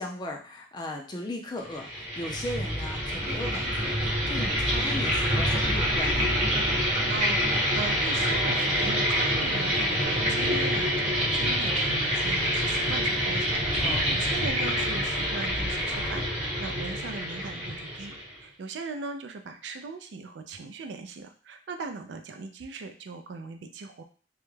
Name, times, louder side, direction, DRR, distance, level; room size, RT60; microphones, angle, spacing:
voice 1, 0.0-6.3 13.8-14.1, left 1 dB, 25° left, 1 dB, 0.4 m, -37 dB
sound 1, 1.7-18.4, equal, 40° right, 0.8 m, -26 dB
voice 2, 7.1-24.0, right 4 dB, 70° right, 6 dB, 0.3 m, -39 dB
2.3 x 2.1 x 3.1 m, 0.39 s
head